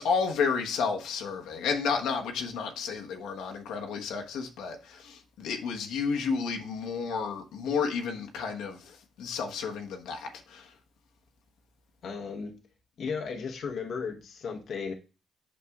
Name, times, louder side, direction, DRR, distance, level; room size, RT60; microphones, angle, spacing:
voice 1, 0.0-10.7, left 5 dB, 90° left, 1.1 m, -31 dB
voice 2, 12.0-12.6 13.0-14.9, left 5 dB, 60° left, 1.0 m, -35 dB
8.4 x 6.5 x 2.4 m
cardioid pair, 90°, 0 cm